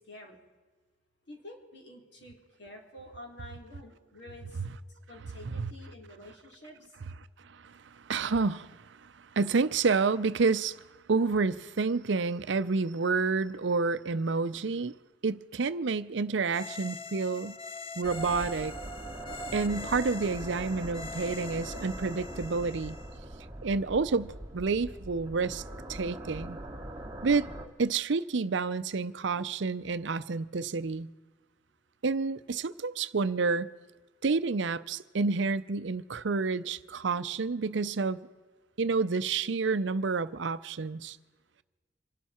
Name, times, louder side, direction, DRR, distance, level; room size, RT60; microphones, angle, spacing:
voice 1, 1.3-4.6 5.1-6.7, left 1 dB, 60° left, 3.7 m, -49 dB
voice 2, 8.0-10.8 11.1-14.9 15.2-17.6 18.0-18.7 19.5-23.0 23.6-25.6 25.9-26.6 27.2-27.5 27.8-31.1 32.0-33.7 34.2-38.2 38.8-41.2, right 4 dB, 65° right, 0.6 m, -29 dB
sound 1, 16.5-23.2, left 2 dB, 30° left, 0.9 m, -42 dB
sound 2, 18.0-27.7, right 1 dB, 20° right, 1.2 m, -42 dB
26.5 x 12.0 x 4.4 m
head